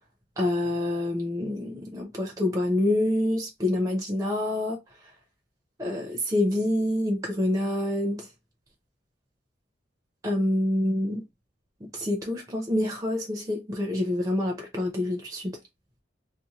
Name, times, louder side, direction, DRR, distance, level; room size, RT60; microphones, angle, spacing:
voice 1, 0.4-4.8 5.8-8.3 10.2-11.2 11.8-15.6, left 1 dB, 20° right, 0.6 m, -27 dB
2.7 x 2.1 x 2.9 m
head